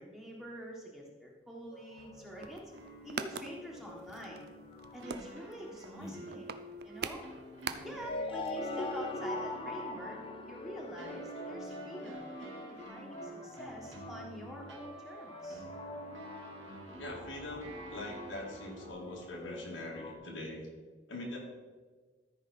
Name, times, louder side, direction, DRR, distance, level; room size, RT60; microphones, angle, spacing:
voice 1, 0.0-2.7 3.0-4.4 4.9-6.5 6.8-7.2 7.8-10.2 10.5-15.6, equal, ahead, -3 dB, 1.4 m, -46 dB
sound 1, 1.7-2.9 3.2-3.4 3.7-5.8 7.3-20.1, left 1 dB, 30° left, 0.7 m, -44 dB
sound 2, 2.0-18.9, right 1 dB, 85° right, 1.5 m, -50 dB
sound 3, 2.3-8.2 8.4-8.5 8.8-8.9, right 6 dB, 55° right, 0.5 m, -43 dB
voice 2, 17.0-20.6 21.1-21.4, left 1 dB, 90° left, -2 dB, 2.3 m, -42 dB
13.5 x 5.3 x 4.2 m, 1.4 s
head